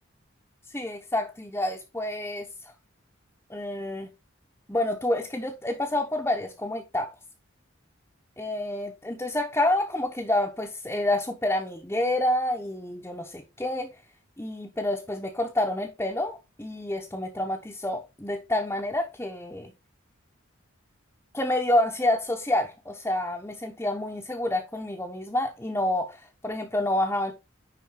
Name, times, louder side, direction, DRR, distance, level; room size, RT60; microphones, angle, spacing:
voice 1, 0.7-2.5 3.5-4.1 4.7-7.1 8.4-13.9 14.4-19.7 21.3-27.3, left 1 dB, 10° left, 0.9 m, -28 dB
10.5 x 4.0 x 3.9 m
head